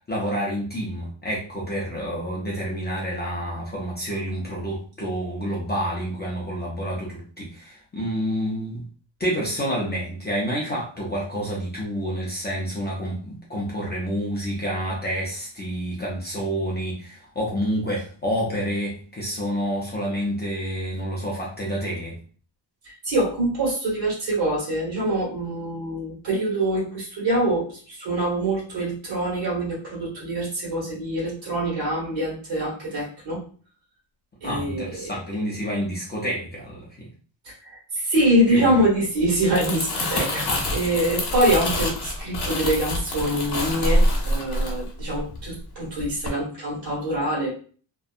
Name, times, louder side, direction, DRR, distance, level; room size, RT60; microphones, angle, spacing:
voice 1, 0.1-8.8 9.2-22.1 34.4-37.1 38.5-38.8, equal, 20° left, -4 dB, 0.5 m, -28 dB
voice 2, 22.8-33.4 34.4-35.1 37.4-47.5, right 1 dB, 65° right, -5 dB, 1.4 m, -25 dB
Crumpling crinkling, 39.3-45.6 46.0-46.3, left 1 dB, 55° left, 0.8 m, -26 dB
2.7 x 2.2 x 2.4 m, 0.41 s
wide cardioid pair, 170°, 48 cm